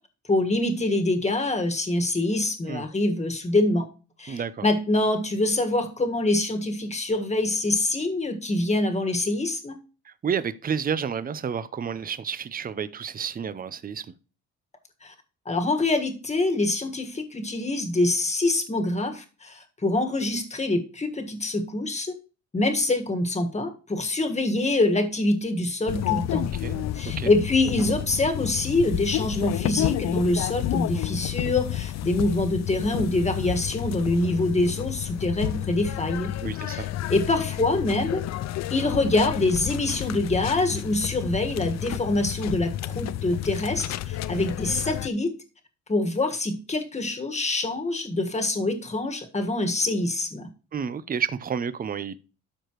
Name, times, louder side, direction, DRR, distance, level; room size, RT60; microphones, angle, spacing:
voice 1, 0.3-3.8 4.2-9.8 15.0-15.1 15.4-22.1 22.5-26.5 26.9-36.3 36.7-38.2 38.7-45.3 45.9-50.5, left 2 dB, 20° left, 1.6 m, -25 dB
voice 2, 4.3-4.6 10.1-14.1 26.3-26.9 27.2-27.3 36.4-36.9 50.7-52.2, right 7 dB, 30° right, 0.6 m, -30 dB
sound 1, 25.9-45.1, left 13 dB, 60° left, 0.5 m, -30 dB
12.5 x 4.9 x 3.1 m
cardioid pair, 90°, 30 cm